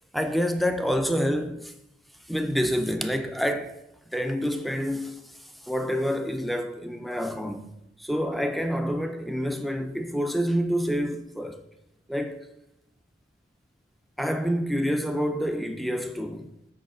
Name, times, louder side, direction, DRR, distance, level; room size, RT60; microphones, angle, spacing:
voice 1, 0.1-1.7 2.3-3.8 4.1-5.2 5.6-7.7 8.0-11.6 12.1-12.5 14.2-16.5, equal, ahead, 0.5 m, -27 dB
6.3 x 4.7 x 6.6 m
head